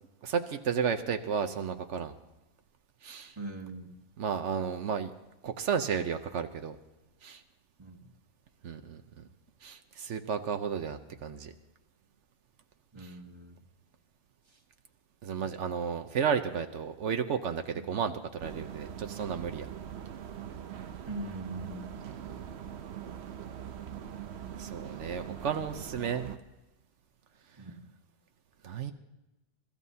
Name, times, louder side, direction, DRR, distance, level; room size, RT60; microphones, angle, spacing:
voice 1, 0.2-2.1 3.0-3.3 4.2-5.1 5.4-6.8 7.2-7.4 8.6-9.2 9.6-11.5 13.0-13.1 15.2-19.7 22.0-22.6 24.6-26.3 28.6-28.9, right 7 dB, 85° right, 7 dB, 1.2 m, -33 dB
voice 2, 3.4-4.0 7.8-8.1 12.9-13.6 14.5-14.6 21.1-22.0 27.6-27.9, right 2 dB, 25° right, 1 dB, 1.7 m, -41 dB
sound 1, 18.4-26.4, right 9 dB, 65° right, 1.0 m, -42 dB
29.0 x 14.5 x 2.8 m, 1.0 s
omnidirectional pair, 1.2 m